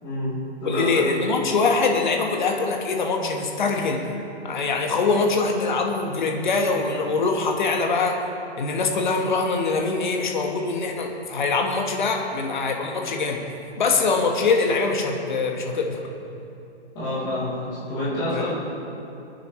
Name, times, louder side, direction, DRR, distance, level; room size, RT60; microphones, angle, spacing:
voice 1, 0.0-1.0 16.9-18.5, left 1 dB, 15° left, -11 dB, 3.1 m, -27 dB
voice 2, 0.7-4.0 4.4-8.1 8.6-13.4 13.8-16.0 18.3-18.5, left 4 dB, 45° left, 2 dB, 1.5 m, -23 dB
24.0 x 9.5 x 3.2 m, 2.8 s
hypercardioid pair, 175°, 33 cm